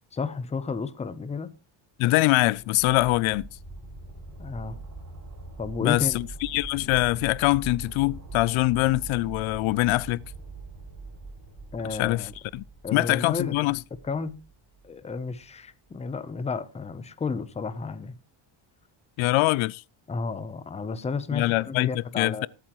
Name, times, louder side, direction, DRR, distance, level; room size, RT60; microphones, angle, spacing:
voice 1, 0.1-1.5 4.4-4.8 5.6-6.2 11.7-12.3 12.8-13.5 14.0-14.4 14.8-18.2 20.1-22.5, left 4 dB, 15° left, 0.6 m, -32 dB
voice 2, 2.0-3.5 5.8-10.2 12.0-12.2 12.5-12.6 12.9-13.8 19.2-19.8 21.3-21.9 22.2-22.5, left 19 dB, 80° left, 0.5 m, -23 dB
sound 1, 2.4-15.2 15.6-15.7, right 3 dB, 35° right, 5.6 m, -43 dB
20.5 x 8.6 x 3.0 m
cardioid pair, 160°, 47 cm